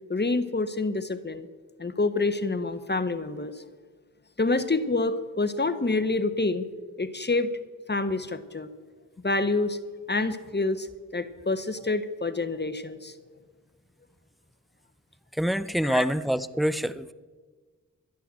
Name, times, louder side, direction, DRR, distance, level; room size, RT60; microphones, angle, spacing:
voice 1, 0.1-1.5 1.8-3.6 4.4-6.7 7.0-7.5 7.9-8.7 9.2-9.8 10.1-10.9 11.1-13.1 15.8-16.0, left 3 dB, 30° left, 12 dB, 1.2 m, -27 dB
voice 2, 15.3-17.1, equal, ahead, 15 dB, 0.6 m, -26 dB
13.0 x 11.0 x 7.7 m, 1.4 s
cardioid pair, 50°, 33 cm